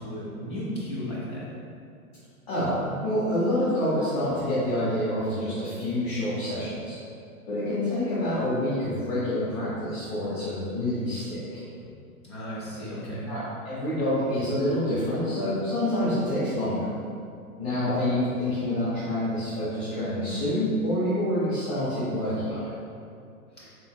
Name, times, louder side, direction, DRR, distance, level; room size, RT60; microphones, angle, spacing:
voice 1, 0.0-1.5 11.8-11.9 12.2-13.3 17.7-18.0 23.5-23.7, equal, 20° left, -8 dB, 0.3 m, -35 dB
voice 2, 2.5-7.0 7.5-11.6 13.3-16.9 17.6-22.7, left 1 dB, 40° left, -11 dB, 1.2 m, -27 dB
3.6 x 2.8 x 2.2 m, 2.4 s
hypercardioid pair, 120°, 44 cm